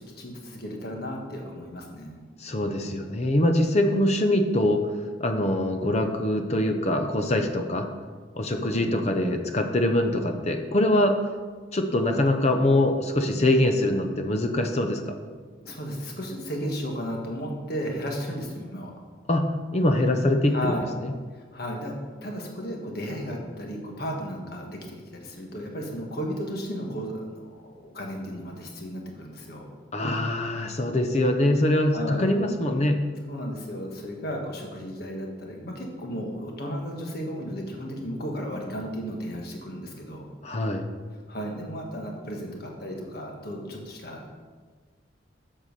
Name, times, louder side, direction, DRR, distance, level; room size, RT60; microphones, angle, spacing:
voice 1, 0.0-2.3 8.8-9.1 15.6-18.9 20.5-20.9 21.3-21.9 22.2-29.7 31.9-32.3 33.3-40.3 41.3-44.3, equal, 50° left, 1 dB, 1.5 m, -34 dB
voice 2, 2.4-4.8 5.2-7.9 8.4-11.2 11.7-15.1 19.3-20.7 21.0-21.1 29.9-33.0 40.4-40.8, left 1 dB, 35° left, 6 dB, 0.7 m, -23 dB
7.8 x 5.6 x 6.7 m, 1.5 s
head